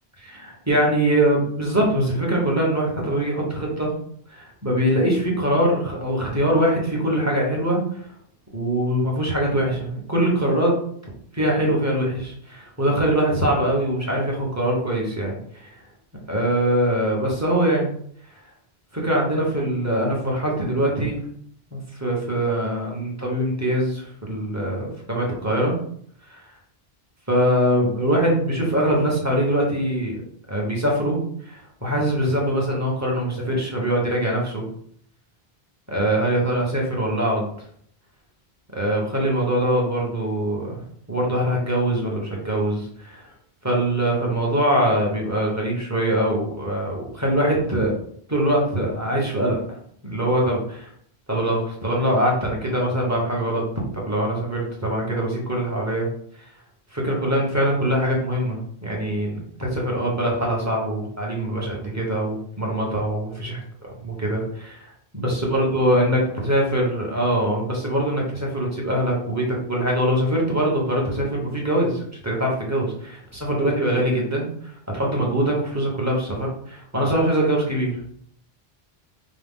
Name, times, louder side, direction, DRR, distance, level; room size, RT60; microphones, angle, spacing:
voice 1, 0.2-3.9 4.3-8.0 8.5-10.8 11.3-15.7 16.3-17.9 18.9-21.2 21.7-25.8 26.3-26.4 27.3-30.1 30.5-31.2 31.4-34.6 35.9-37.5 38.7-40.8 41.1-43.2 43.6-47.9 48.3-49.8 50.0-50.9 51.3-53.6 53.9-56.1 56.4-56.5 56.9-63.6 64.0-78.0, right 1 dB, 15° right, -2 dB, 1.1 m, -23 dB
5.0 x 2.3 x 3.7 m, 0.63 s
omnidirectional pair, 1.0 m